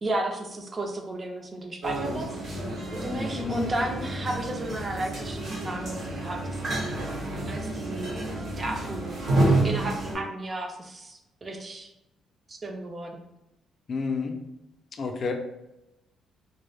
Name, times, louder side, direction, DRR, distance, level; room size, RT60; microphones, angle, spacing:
voice 1, 0.0-2.4 3.0-7.0 7.5-8.3 8.6-9.2 9.5-11.9 12.5-13.2, right 2 dB, 35° right, 3 dB, 0.5 m, -34 dB
sound 1, 1.8-10.2, right 1 dB, 60° right, 0.9 m, -29 dB
voice 2, 3.4-3.7 13.9-14.3 15.0-15.3, left 4 dB, 50° left, 4 dB, 0.4 m, -30 dB
2.3 x 2.0 x 3.2 m, 0.91 s
cardioid pair, 90°, 0 cm